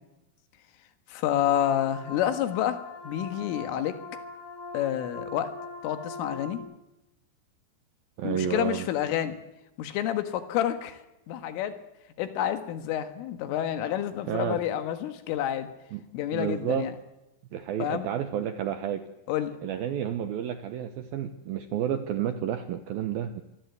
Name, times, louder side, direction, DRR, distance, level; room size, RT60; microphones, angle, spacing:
voice 1, 1.1-4.0 4.7-5.5 5.8-6.6 8.2-9.4 9.8-11.0 11.3-11.8 12.2-15.7 16.1-16.9 17.8-18.1 19.3-19.6, left 11 dB, 85° left, 9 dB, 4.1 m, -29 dB
sound 1, 1.4-6.5, left 2 dB, 35° left, 2.7 m, -41 dB
voice 2, 8.2-8.9 14.3-14.7 15.9-16.0 16.3-16.9 17.5-19.1 19.6-23.4, right 9 dB, 80° right, 9 dB, 2.2 m, -30 dB
26.0 x 21.5 x 8.1 m, 0.95 s
omnidirectional pair, 5.6 m